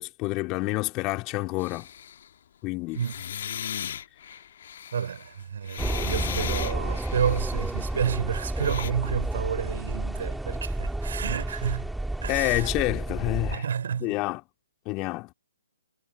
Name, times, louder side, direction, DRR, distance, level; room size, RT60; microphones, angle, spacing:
voice 1, 0.0-1.9 2.6-3.0 12.3-13.6 14.0-14.4 14.9-15.3, left 23 dB, 25° left, 2.4 m, -28 dB
sound 1, 1.6-2.3 2.9-8.0 8.6-8.9, left 9 dB, 45° left, 1.7 m, -37 dB
voice 2, 4.9-11.9 12.2-12.7 13.5-14.1, right 7 dB, 55° right, 4.1 m, -30 dB
sound 2, 5.8-13.6, right 1 dB, ahead, 2.8 m, -31 dB
figure-of-eight pair, 130°, 0 cm